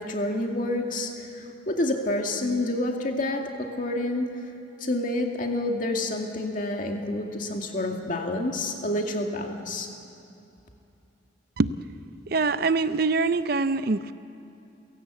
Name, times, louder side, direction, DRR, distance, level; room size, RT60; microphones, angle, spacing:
voice 1, 0.0-4.3 4.8-9.9, left 1 dB, 45° left, 2 dB, 2.3 m, -28 dB
voice 2, 12.3-14.1, right 3 dB, 55° right, 13 dB, 0.6 m, -24 dB
29.5 x 17.0 x 8.3 m, 2.7 s
head